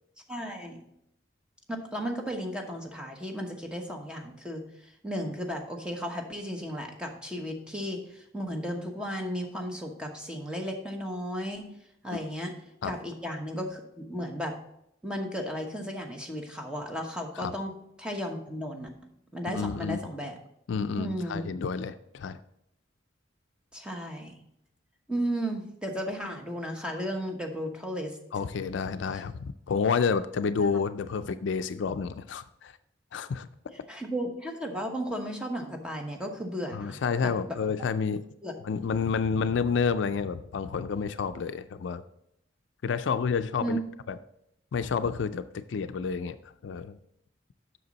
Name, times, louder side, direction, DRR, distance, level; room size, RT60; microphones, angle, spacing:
voice 1, 0.3-0.8 1.7-4.6 5.0-11.7 12.0-12.5 12.8-14.5 15.0-17.7 18.0-18.9 19.3-20.4 21.0-21.5 23.7-24.4 25.1-28.2 29.1-29.2 33.7-37.6 38.4-38.5 43.6-43.8, equal, 5° right, 2 dB, 1.1 m, -34 dB
voice 2, 19.5-20.0 20.7-22.4 28.3-32.7 33.1-33.5 36.7-38.2 38.6-42.0 42.8-43.8 44.1-44.2 44.7-46.4 46.6-47.0, left 5 dB, 70° left, 12 dB, 0.4 m, -29 dB
7.9 x 6.1 x 4.0 m, 0.77 s
head